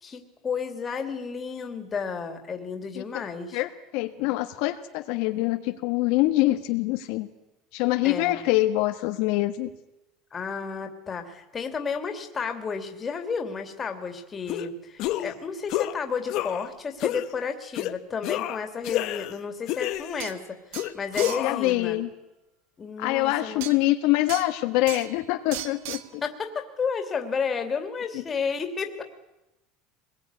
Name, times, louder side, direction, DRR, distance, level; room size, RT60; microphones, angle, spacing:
voice 1, 0.0-3.6 8.0-8.5 10.3-20.6 20.9-22.0 22.8-23.6 26.2-29.0, left 5 dB, 15° left, 5 dB, 2.7 m, -32 dB
voice 2, 3.5-7.3 7.7-9.7 21.4-22.1 23.0-26.2, left 17 dB, 60° left, 6 dB, 1.5 m, -25 dB
sound 1, 14.5-14.7 15.0-15.4 15.7-15.9 16.3-16.7 17.0-17.3 17.7-17.9 18.2-19.4 19.7-20.3 20.7-21.7, left 14 dB, 45° left, 1.3 m, -29 dB
sound 2, 19.9-20.0 20.2-20.4 20.7-21.5 23.6-23.8 24.3-24.5 24.9-25.2 25.5-26.1, right 13 dB, 80° right, 1.6 m, -36 dB
25.0 x 21.0 x 9.8 m, 0.94 s
cardioid pair, 175°, 0 cm